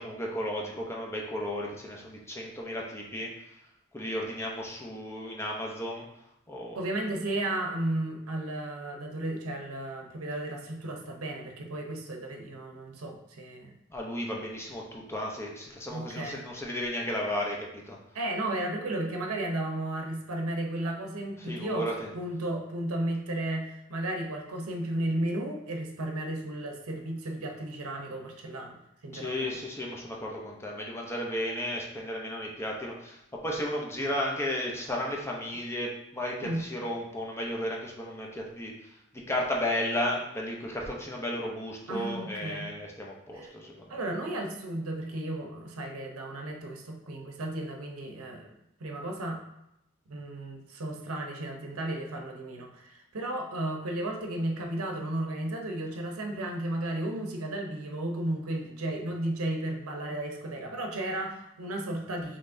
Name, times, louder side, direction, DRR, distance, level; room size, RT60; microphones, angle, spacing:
voice 1, 0.0-3.3 3.9-6.1 6.5-6.8 13.9-18.0 21.4-22.1 29.1-38.7 39.1-44.0, left 1 dB, 10° left, -2 dB, 0.7 m, -34 dB
voice 2, 6.7-13.7 15.9-16.4 18.1-21.9 22.1-28.8 29.0-29.5 36.4-36.6 41.9-42.7 43.3-43.5 43.9-48.5 48.8-49.4 50.1-62.4, right 1 dB, 85° right, 2 dB, 0.7 m, -34 dB
5.7 x 3.2 x 2.6 m, 0.85 s
head